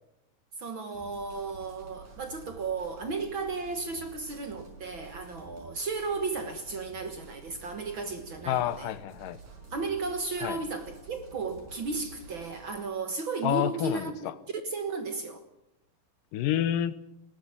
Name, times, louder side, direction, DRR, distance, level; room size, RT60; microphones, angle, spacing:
voice 1, 0.6-8.9 9.7-14.3 14.6-15.4, right 4 dB, 50° right, 1.7 m, -34 dB
sound 1, 0.9-12.8, right 3 dB, 70° right, 6.6 m, -50 dB
voice 2, 8.5-9.4 10.4-10.6 13.4-14.3 16.3-17.0, left 11 dB, 90° left, 2.6 m, -29 dB
20.0 x 17.0 x 8.7 m
omnidirectional pair, 3.8 m